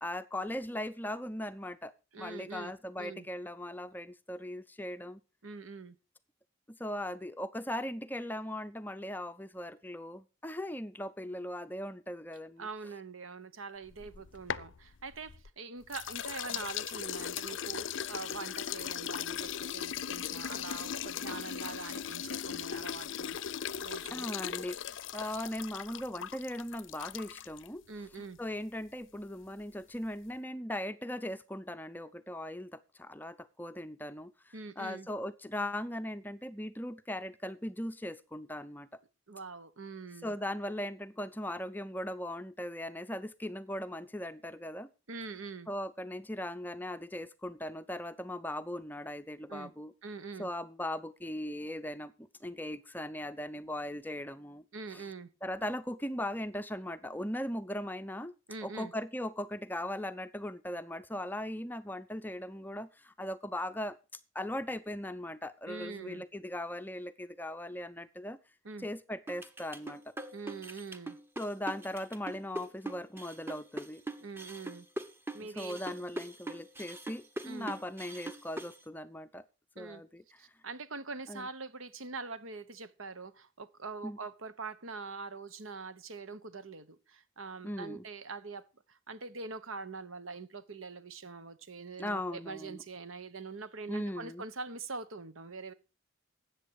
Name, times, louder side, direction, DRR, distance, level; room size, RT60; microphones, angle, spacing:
voice 1, 0.0-1.9 2.2-5.2 6.8-12.7 16.5-16.7 24.1-24.9 25.1-27.8 28.2-39.0 40.2-44.9 45.7-49.9 50.4-54.6 54.9-55.0 55.4-58.3 58.6-64.0 64.3-68.4 68.8-70.0 71.4-74.0 75.6-79.4 79.8-80.4 81.3-81.5 84.0-84.2 87.6-88.0 92.0-92.8 93.9-94.4, left 1 dB, 10° left, 0.5 m, -39 dB
voice 2, 2.1-3.3 5.4-6.0 12.6-23.4 23.8-24.3 27.9-28.4 34.5-35.1 39.3-40.3 45.1-45.7 49.5-49.7 50.0-50.5 54.7-55.3 58.5-58.9 65.7-66.2 68.6-68.9 70.3-71.2 74.2-74.9 75.3-75.8 77.4-77.8 79.7-80.0 80.4-88.6 88.9-95.7, right 4 dB, 80° right, 1.2 m, -44 dB
sound 1, 13.9-15.5 15.9-27.7, left 9 dB, 65° left, 0.5 m, -38 dB
sound 2, 69.3-78.8, right 1 dB, 10° right, 1.0 m, -41 dB
13.0 x 8.5 x 4.8 m
head